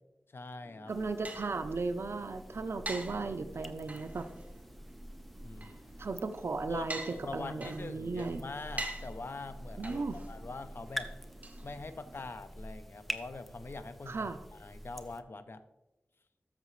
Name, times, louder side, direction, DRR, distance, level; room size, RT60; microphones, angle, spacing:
voice 1, 0.3-0.9 5.4-5.9 6.7-11.1 11.6-15.6, left 3 dB, 60° left, 10 dB, 0.6 m, -44 dB
sound 1, 0.6-12.3, right 2 dB, 35° right, 1.2 m, -47 dB
sound 2, 0.9-15.2, equal, ahead, 0.6 m, -46 dB
voice 2, 0.9-4.2 6.0-7.0 7.3-8.4 9.8-10.2 14.1-14.4, right 3 dB, 80° right, 9 dB, 0.6 m, -36 dB
13.0 x 6.6 x 3.2 m, 1.0 s
wide cardioid pair, 85°, 4 cm